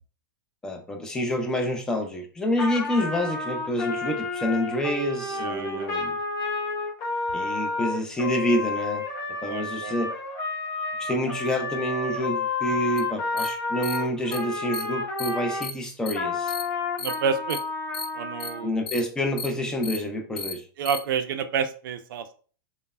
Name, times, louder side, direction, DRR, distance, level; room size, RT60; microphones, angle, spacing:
voice 1, 0.6-6.2 7.3-9.0 9.4-10.1 11.0-16.5 18.6-20.7, equal, 5° left, 3 dB, 0.3 m, -28 dB
Trumpet, 2.6-15.7 16.1-18.7, left 3 dB, 40° left, 0.8 m, -30 dB
voice 2, 5.3-5.9 9.4-9.9 17.0-17.6 18.1-18.7 20.8-22.3, right 6 dB, 65° right, 10 dB, 0.4 m, -29 dB
sound 1, 13.0-13.1 13.4-13.5 13.8-14.0 14.3-14.4 14.7-14.8 15.2-15.3 15.6-15.7 16.1-16.2 16.5-16.6 17.0-17.1 17.5-17.6 17.9-18.0 18.4-18.5 18.9-19.0 19.4-19.5 19.8-20.0 20.4-20.5 20.8-21.0, left 5 dB, 85° left, 0.7 m, -33 dB
3.1 x 2.0 x 2.3 m, 0.41 s
supercardioid pair, 150°, 12 cm